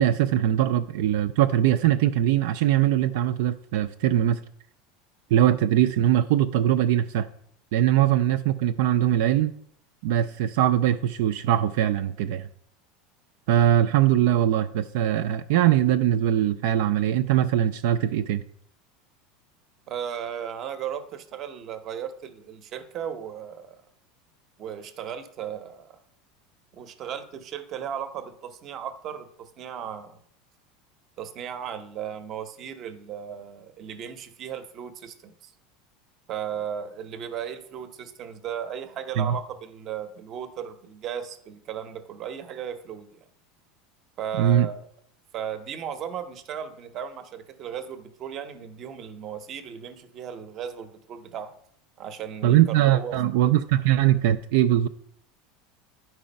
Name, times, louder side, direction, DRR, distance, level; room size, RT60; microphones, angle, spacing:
voice 1, 0.0-4.4 5.3-7.3 7.7-9.5 10.0-12.5 13.5-18.4 39.2-39.4 44.4-44.7 52.4-54.9, right 11 dB, 70° right, 8 dB, 0.4 m, -21 dB
voice 2, 19.9-23.8 24.6-26.0 26.7-30.2 31.2-35.5 36.3-43.2 44.2-44.9 45.3-51.6 52.0-53.2, right 8 dB, 30° right, 11 dB, 0.7 m, -36 dB
10.0 x 4.7 x 5.3 m, 0.68 s
supercardioid pair, 165°, 0 cm